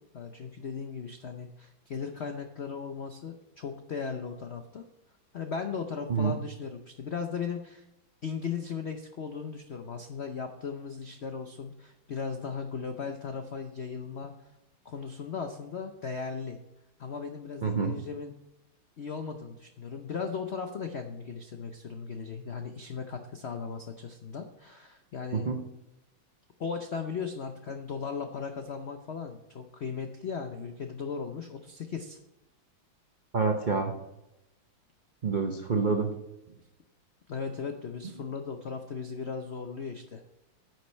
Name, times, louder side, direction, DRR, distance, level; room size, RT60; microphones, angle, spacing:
voice 1, 0.1-4.8 5.3-7.8 8.2-14.3 14.8-16.6 17.0-18.3 19.0-25.5 26.6-32.2 37.3-40.2, left 5 dB, 85° left, 6 dB, 0.5 m, -37 dB
voice 2, 17.6-17.9 25.3-25.6 33.3-33.9 35.2-36.1, right 5 dB, 90° right, 3 dB, 0.4 m, -27 dB
9.8 x 6.3 x 4.4 m, 0.91 s
omnidirectional pair, 2.2 m